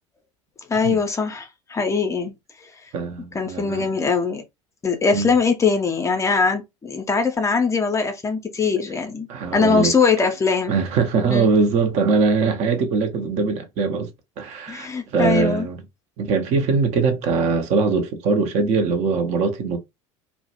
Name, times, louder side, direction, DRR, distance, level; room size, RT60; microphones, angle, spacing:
voice 1, 0.7-2.3 3.3-4.4 4.8-9.3 9.5-10.8 11.3-11.5 14.7-15.7, left 5 dB, 20° left, 0.5 m, -21 dB
voice 2, 2.9-3.9 5.1-5.3 9.3-9.9 10.7-14.1 14.4-15.8 16.2-19.8, right 4 dB, 45° right, 0.5 m, -21 dB
2.2 x 2.1 x 2.7 m
figure-of-eight pair, 70°, 17 cm